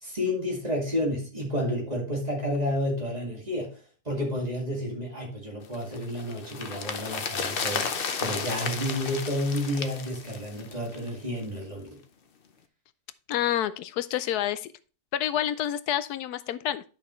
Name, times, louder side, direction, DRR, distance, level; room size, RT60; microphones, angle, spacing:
voice 1, 0.0-3.8 4.1-7.9 8.2-12.0, left 1 dB, 25° right, 2.2 m, -30 dB
sound 1, 5.7-11.2 11.4-11.5, left 5 dB, 50° left, 0.8 m, -33 dB
voice 2, 13.3-14.7 15.1-16.8, left 11 dB, 85° left, 1.1 m, -28 dB
10.5 x 5.8 x 3.1 m
omnidirectional pair, 1.6 m